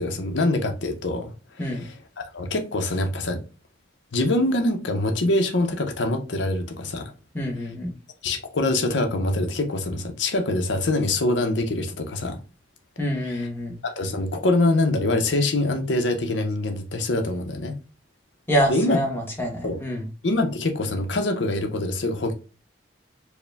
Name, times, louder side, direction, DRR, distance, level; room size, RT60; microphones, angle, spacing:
voice 1, 0.0-1.3 2.3-3.4 4.1-7.1 8.2-12.4 13.8-17.7 18.7-19.0 19.6-19.8 20.2-22.3, left 2 dB, 80° left, 0.7 m, -24 dB
voice 2, 7.3-7.9 13.0-13.8 18.5-20.1, equal, 10° left, 1.0 m, -26 dB
4.7 x 2.1 x 3.3 m
head